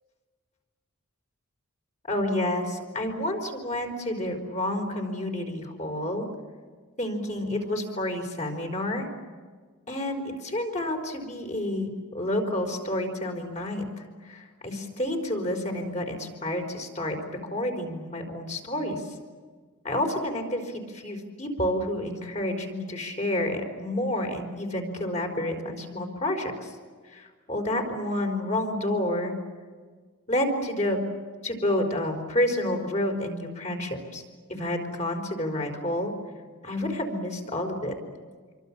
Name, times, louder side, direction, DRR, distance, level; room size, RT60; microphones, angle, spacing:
voice 1, 2.1-6.3 7.0-9.1 9.9-13.8 14.3-17.2 17.4-19.0 19.8-26.7 27.1-29.3 30.3-31.0 31.4-34.2 34.5-36.1 36.6-37.9, left 1 dB, 35° left, 3 dB, 4.6 m, -29 dB
27.0 x 24.5 x 7.5 m, 1.5 s
head